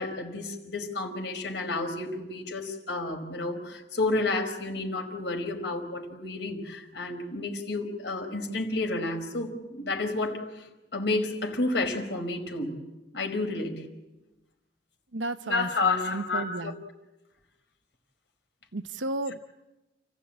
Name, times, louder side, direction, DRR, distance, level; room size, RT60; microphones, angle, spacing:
voice 1, 0.0-10.7 10.9-12.7 13.1-13.8 15.4-16.7, left 2 dB, 65° left, 3 dB, 4.7 m, -30 dB
voice 2, 15.1-16.8 18.7-19.4, right 2 dB, 90° right, 10 dB, 1.0 m, -33 dB
29.5 x 15.5 x 8.8 m, 1.1 s
head